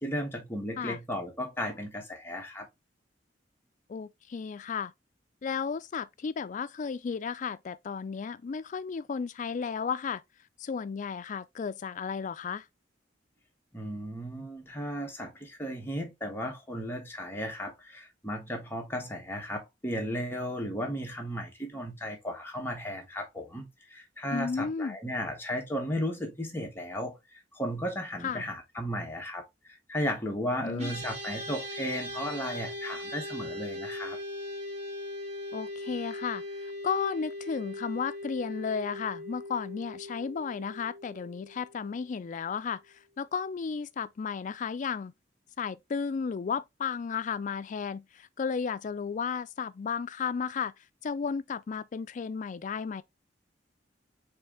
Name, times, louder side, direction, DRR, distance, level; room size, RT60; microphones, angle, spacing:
voice 1, 0.0-2.7 13.7-34.2, equal, 15° left, 1.3 m, -35 dB
voice 2, 3.9-4.9 5.4-10.2 10.6-12.7 24.3-25.0 28.2-28.4 30.6-31.0 35.5-42.8 43.2-45.1 45.6-50.7 51.0-53.0, left 6 dB, 45° left, 0.3 m, -33 dB
sound 1, 30.8-42.2, left 1 dB, 40° right, 2.0 m, -40 dB
4.5 x 3.1 x 3.5 m
head